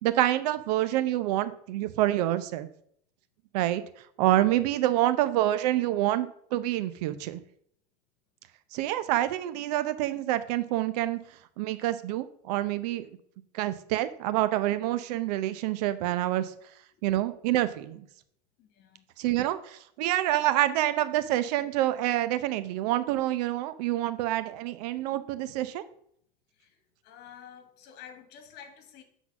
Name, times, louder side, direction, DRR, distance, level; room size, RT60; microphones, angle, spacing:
voice 1, 0.0-2.7 3.5-3.8 4.2-7.4 8.7-11.2 11.6-13.2 13.5-16.5 17.0-18.1 19.2-25.8, right 14 dB, 75° right, 13 dB, 0.7 m, -27 dB
voice 2, 18.6-19.0 25.9-26.0 26.6-26.8 27.0-29.0, left 8 dB, 55° left, 8 dB, 1.8 m, -50 dB
8.1 x 4.0 x 5.9 m, 0.66 s
supercardioid pair, 105°, 21 cm